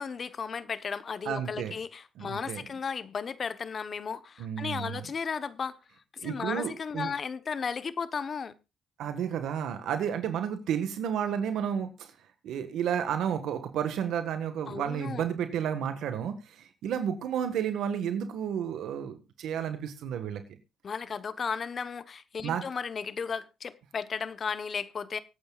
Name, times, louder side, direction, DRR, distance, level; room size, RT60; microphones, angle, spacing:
voice 1, 0.0-5.8 6.2-8.6 14.7-15.2 20.8-25.2, left 6 dB, 45° left, 1.0 m, -35 dB
voice 2, 1.2-1.7 2.2-2.6 4.4-5.1 6.2-7.1 9.0-12.1 12.4-20.4 22.4-22.6, right 8 dB, 80° right, 1.5 m, -32 dB
24.0 x 8.6 x 2.4 m
cardioid pair, 90°, 0 cm